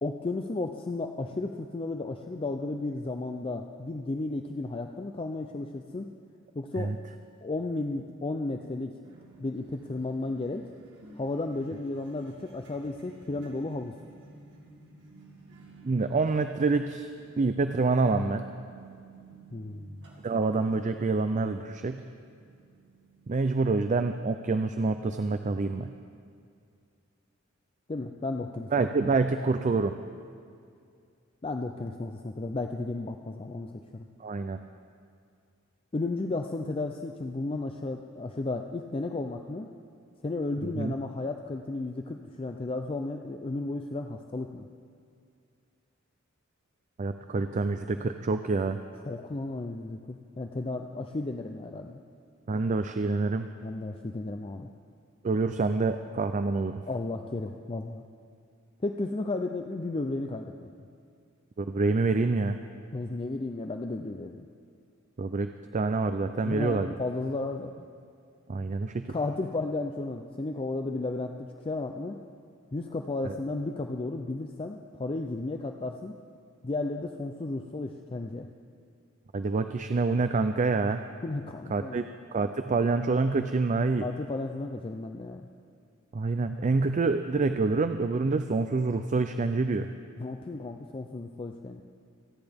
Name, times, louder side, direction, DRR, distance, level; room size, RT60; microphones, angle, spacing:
voice 1, 0.0-6.1 6.5-6.9 7.4-8.9 9.4-10.7 11.2-14.0 19.5-19.9 27.9-28.8 31.4-34.1 35.9-39.7 40.2-44.7 49.0-52.0 53.6-54.7 56.9-58.0 58.8-60.7 62.9-64.5 66.4-67.9 69.1-72.2 72.7-76.1 76.6-78.5 81.2-82.0 84.0-85.5 90.2-91.8, left 2 dB, 25° left, 4 dB, 0.5 m, -33 dB
sound 1, 9.0-23.6, right 3 dB, 60° right, 2.4 m, -54 dB
voice 2, 15.8-17.1 17.4-18.5 20.2-22.0 23.3-25.9 28.7-29.9 34.2-34.6 40.8-40.9 47.0-48.8 52.5-53.5 55.2-56.7 61.6-62.6 65.2-66.9 68.5-69.1 73.2-73.4 79.3-81.0 81.7-82.0 82.3-84.1 86.1-89.9, right 3 dB, 35° right, 8 dB, 0.4 m, -27 dB
27.0 x 10.0 x 3.5 m, 2.3 s
head